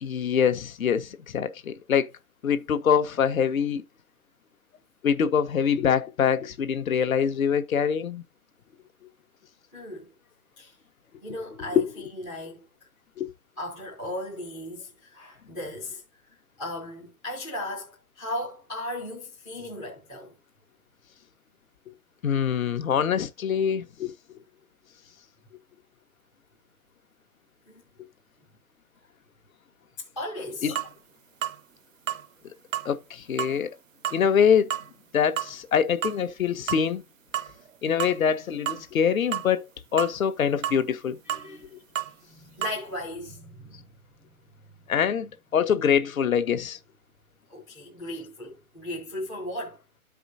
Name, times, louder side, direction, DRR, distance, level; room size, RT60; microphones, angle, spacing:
voice 1, 0.0-2.1 2.4-3.8 5.0-8.2 11.7-11.8 13.2-13.3 22.2-24.1 30.6-30.8 32.8-33.7 34.1-34.7 35.1-37.0 37.8-41.2 44.9-46.8, left 7 dB, 65° left, 1.2 m, -24 dB
voice 2, 9.7-10.1 10.6-10.7 11.2-12.7 13.6-16.0 16.6-20.4 27.7-27.8 30.0-30.7 41.2-43.8 47.5-49.8, left 1 dB, 5° left, 0.4 m, -37 dB
sound 1, 30.7-30.9 31.4-31.6 32.1-32.2 32.7-32.9 33.4-33.6 34.0-34.2 34.7-34.9 35.4-35.5 36.0-36.2 36.7-36.8 37.3-37.7 38.0-38.2 38.7-38.8 39.3-39.5 40.0-40.2 40.6-40.8 41.3-41.5 41.9-42.1 42.6-42.8, right 10 dB, 60° right, 0.7 m, -30 dB
13.0 x 4.9 x 2.6 m
hypercardioid pair, 145°, 44 cm